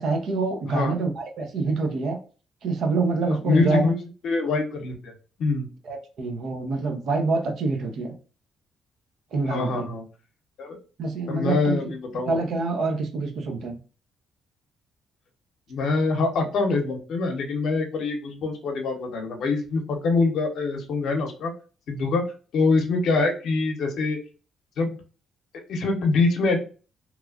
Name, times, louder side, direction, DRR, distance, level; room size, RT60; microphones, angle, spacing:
voice 1, 0.0-2.2 2.6-3.9 5.9-8.2 9.3-9.9 11.0-11.9 12.3-13.8, right 3 dB, 70° right, 0.6 m, -26 dB
voice 2, 3.4-4.0 4.2-5.1 5.4-5.7 9.5-10.0 10.6-10.8 11.3-12.4 15.7-21.5 21.9-22.2 22.5-24.2 24.8-25.0 25.7-26.6, left 3 dB, 70° left, 0.7 m, -24 dB
3.0 x 2.3 x 2.3 m
cardioid pair, 90°, 0 cm